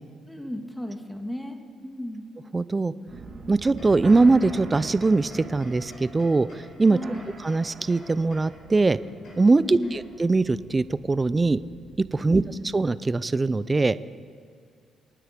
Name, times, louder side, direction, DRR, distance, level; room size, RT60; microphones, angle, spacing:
voice 1, 0.3-2.3 6.9-7.2 9.6-9.9 12.2-12.5, left 1 dB, 5° left, 4 dB, 1.9 m, -35 dB
voice 2, 2.5-2.9 3.5-7.0 7.4-9.0 9.4-11.6 12.1-12.4 12.7-14.0, right 3 dB, 25° right, 17 dB, 0.5 m, -21 dB
sound 1, 3.1-12.6, right 3 dB, 50° right, 2.1 m, -43 dB
sound 2, 3.8-10.3, left 1 dB, 65° left, 5.4 m, -49 dB
27.5 x 9.4 x 5.2 m, 2.2 s
cardioid pair, 90°, 0 cm